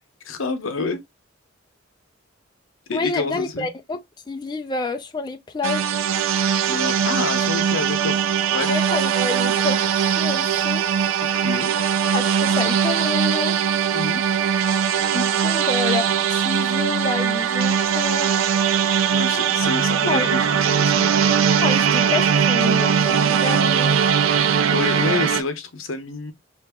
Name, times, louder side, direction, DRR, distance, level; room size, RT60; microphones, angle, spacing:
voice 1, 0.2-1.0 2.9-3.7 6.7-8.7 11.2-11.7 13.9-14.2 19.1-21.2 24.3-24.5 24.7-26.3, left 4 dB, 85° left, 0.8 m, -28 dB
voice 2, 2.9-4.0 4.3-5.9 8.7-10.8 12.1-13.6 15.1-18.3 20.1-20.3 21.6-24.0, left 3 dB, 20° left, 0.4 m, -28 dB
sound 1, 5.6-25.4, right 7 dB, 90° right, 0.4 m, -20 dB
2.9 x 2.6 x 3.4 m
head